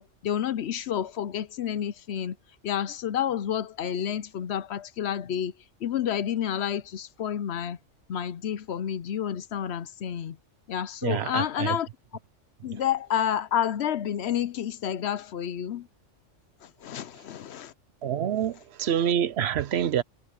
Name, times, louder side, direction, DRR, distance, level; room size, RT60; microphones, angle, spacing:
voice 1, 0.0-2.4 2.6-5.5 5.8-7.8 8.1-10.4 10.7-11.9 12.6-15.9 16.6-17.7, left 9 dB, 65° left, 0.9 m, -30 dB
voice 2, 11.0-11.8 12.6-12.8 18.0-20.0, right 9 dB, 65° right, 0.8 m, -27 dB
omnidirectional pair, 1.3 m